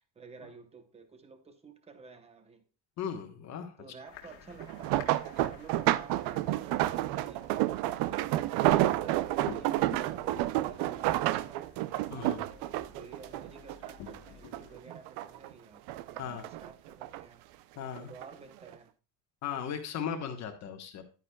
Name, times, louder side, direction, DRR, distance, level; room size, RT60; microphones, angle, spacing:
voice 1, 0.0-2.7 3.8-7.4 8.0-11.6 12.3-17.4 18.0-18.9, right 4 dB, 15° right, 8 dB, 0.9 m, -52 dB
voice 2, 3.0-3.8 12.1-12.4 16.2-16.4 17.8-18.1 19.4-21.0, left 7 dB, 40° left, 6 dB, 1.2 m, -37 dB
sound 1, 4.0-14.8, left 8 dB, 65° left, 1.6 m, -52 dB
sound 2, 4.6-14.2 14.5-15.5 15.9-17.2 18.0-18.3 18.7-18.8, right 15 dB, 65° right, 0.5 m, -30 dB
11.0 x 9.8 x 2.3 m, 0.34 s
cardioid pair, 165°, 43 cm